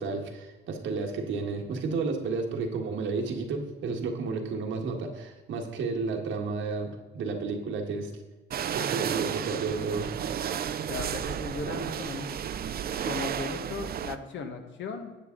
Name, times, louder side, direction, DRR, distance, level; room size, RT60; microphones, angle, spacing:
voice 1, 0.0-8.1 8.7-10.1, right 4 dB, 75° right, 2 dB, 1.7 m, -32 dB
sound 1, 8.5-14.2, right 8 dB, 50° right, 0.6 m, -32 dB
voice 2, 10.9-12.4 13.0-15.1, left 4 dB, 70° left, 5 dB, 1.5 m, -37 dB
10.0 x 8.1 x 3.9 m, 1.2 s
cardioid pair, 90°, 20 cm